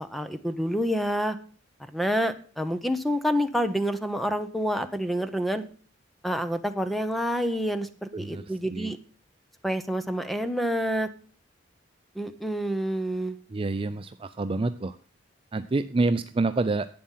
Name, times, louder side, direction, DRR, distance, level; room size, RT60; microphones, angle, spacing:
voice 1, 0.0-1.4 1.9-5.6 6.2-9.0 9.6-11.1 12.1-13.4, equal, ahead, 10 dB, 0.9 m, -28 dB
voice 2, 8.1-8.4 8.7-8.9 13.5-15.0 15.5-16.9, right 3 dB, 30° right, 10 dB, 0.4 m, -27 dB
11.5 x 8.6 x 5.7 m, 0.40 s
head